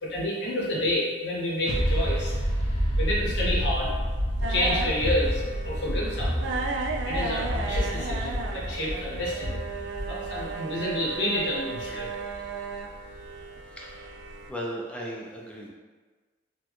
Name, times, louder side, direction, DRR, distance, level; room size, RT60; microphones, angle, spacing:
voice 1, 0.0-2.3 2.9-3.9 4.5-6.5 7.0-9.6 10.1-12.1, left 1 dB, 65° left, -5 dB, 0.9 m, -29 dB
sound 1, 1.7-9.2, equal, 90° left, 0.7 m, -29 dB
Run, 3.5-10.5, equal, 30° right, 1.2 m, -32 dB
sound 2, 4.4-14.5, right 3 dB, 65° right, 0.3 m, -35 dB
voice 2, 13.7-14.2 14.5-15.7, equal, 5° left, -3 dB, 0.4 m, -36 dB
4.1 x 2.2 x 3.0 m, 1.4 s
head